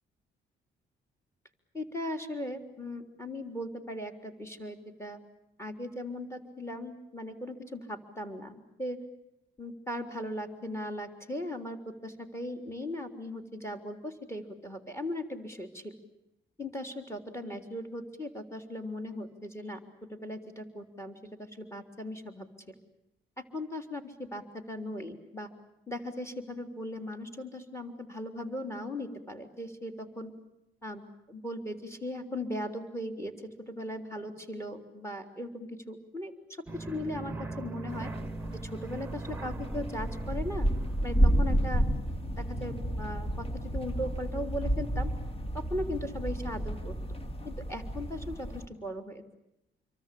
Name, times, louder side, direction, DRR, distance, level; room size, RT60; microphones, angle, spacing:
voice 1, 1.7-5.2 5.6-9.0 9.6-15.9 16.6-19.8 20.1-22.7 23.4-25.5 25.9-30.3 30.8-38.1 38.6-40.7 41.0-41.8 42.4-43.5 43.7-45.1 45.5-46.9 47.4-49.2, left 1 dB, 15° left, 7 dB, 3.8 m, -38 dB
sound 1, 36.7-41.7, right 2 dB, 10° right, 1.4 m, -41 dB
sound 2, 37.9-48.7, right 1 dB, 30° left, 2.9 m, -31 dB
26.5 x 23.5 x 8.6 m, 0.87 s
cardioid pair, 90°, 20 cm